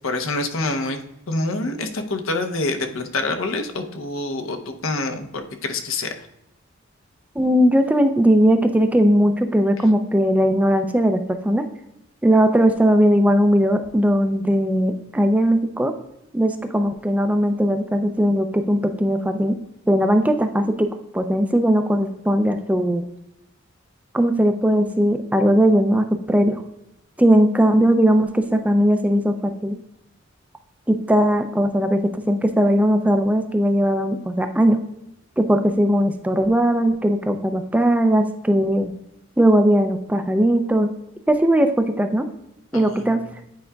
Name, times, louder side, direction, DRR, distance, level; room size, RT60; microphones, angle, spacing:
voice 1, 0.0-6.3 42.7-43.2, left 2 dB, 75° left, 5 dB, 0.8 m, -26 dB
voice 2, 7.4-11.6 12.2-15.9 16.3-19.5 19.9-20.9 21.1-23.0 24.1-26.6 27.2-29.8 30.9-32.0 32.3-34.8 35.4-38.9 39.4-40.9 41.3-42.3 42.7-43.2, equal, 5° right, 6 dB, 0.4 m, -18 dB
9.3 x 4.8 x 2.3 m, 0.84 s
head